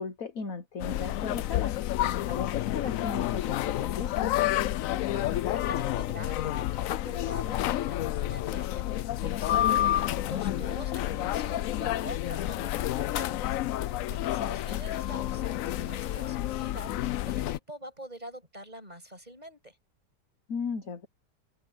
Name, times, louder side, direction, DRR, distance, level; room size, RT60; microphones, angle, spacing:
voice 1, 0.0-1.7 2.3-4.4 14.4-14.6 20.5-21.1, left 5 dB, 50° left, 1.5 m, -36 dB
sound 1, 0.8-17.6, left 13 dB, 75° left, 0.7 m, -29 dB
voice 2, 5.1-19.8, right 1 dB, 20° right, 6.9 m, -45 dB
omnidirectional pair, 2.0 m